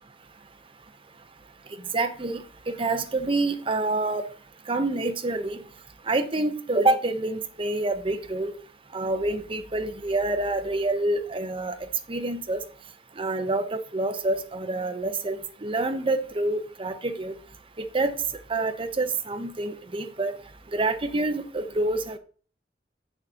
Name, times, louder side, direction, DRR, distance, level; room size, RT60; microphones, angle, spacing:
voice 1, 1.9-2.4 2.8-4.2 4.7-5.6 6.1-8.5 8.9-11.8 12.1-12.6 13.2-17.3 17.9-18.1 18.5-20.3 20.7-22.2, right 2 dB, 30° right, 7 dB, 0.8 m, -27 dB
7.5 x 6.6 x 2.8 m, 0.40 s
head